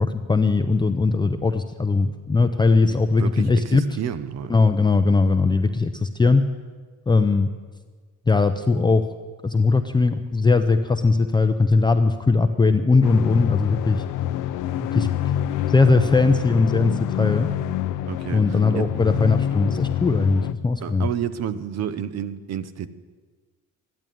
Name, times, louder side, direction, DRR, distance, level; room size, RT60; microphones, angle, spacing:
voice 1, 0.0-3.8 4.5-6.4 7.1-7.5 8.3-9.0 9.4-14.0 14.9-15.1 15.7-17.5 18.3-21.1, left 3 dB, 15° left, 7 dB, 0.6 m, -19 dB
voice 2, 2.9-4.5 18.1-18.9 20.8-22.9, right 9 dB, 55° right, 13 dB, 0.9 m, -30 dB
sound 1, 13.0-20.5, left 11 dB, 80° left, 0.7 m, -26 dB
14.0 x 10.5 x 9.2 m, 1.4 s
cardioid pair, 140°, 30 cm